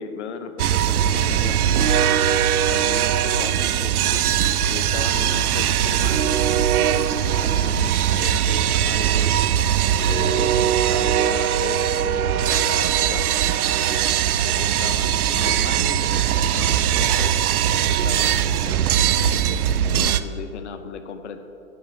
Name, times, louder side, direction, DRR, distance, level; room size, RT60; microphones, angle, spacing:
voice 1, 0.0-2.3 2.7-4.2 4.7-9.3 10.0-13.3 13.8-17.4 17.9-18.8 19.8-21.4, left 6 dB, 55° left, 9 dB, 0.7 m, -36 dB
sound 1, 0.6-20.2, right 10 dB, 90° right, 0.5 m, -20 dB
11.0 x 6.7 x 3.1 m, 2.8 s
hypercardioid pair, 160°, 43 cm